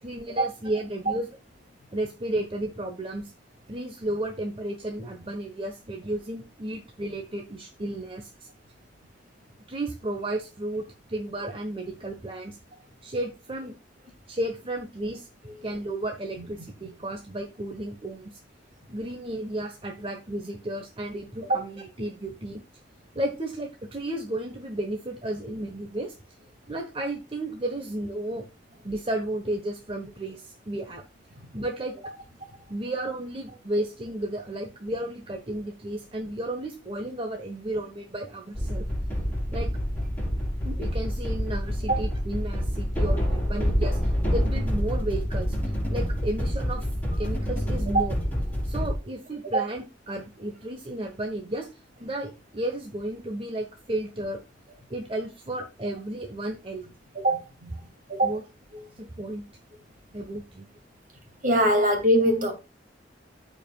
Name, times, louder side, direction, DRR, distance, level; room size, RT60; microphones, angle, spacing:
voice 1, 0.0-1.3 1.9-3.3 3.7-8.5 9.7-12.6 13.0-13.8 14.3-15.3 15.6-18.4 18.9-22.6 23.1-26.1 26.7-28.4 28.8-31.0 31.5-32.1 32.7-38.9 39.5-39.7 40.6-46.9 47.2-48.1 48.6-51.7 52.0-54.4 54.9-56.8 58.2-58.4 59.0-59.4 60.1-60.7 61.8-61.9, right 1 dB, 30° right, 1.2 m, -33 dB
voice 2, 16.4-16.7 21.5-21.6 41.9-42.1 47.9-48.1 49.5-49.6 57.1-57.7 58.1-58.3 61.4-62.5, right 1 dB, 45° right, 2.5 m, -23 dB
sound 1, 38.5-48.9, equal, 10° left, 4.7 m, -27 dB
14.0 x 5.0 x 2.3 m
head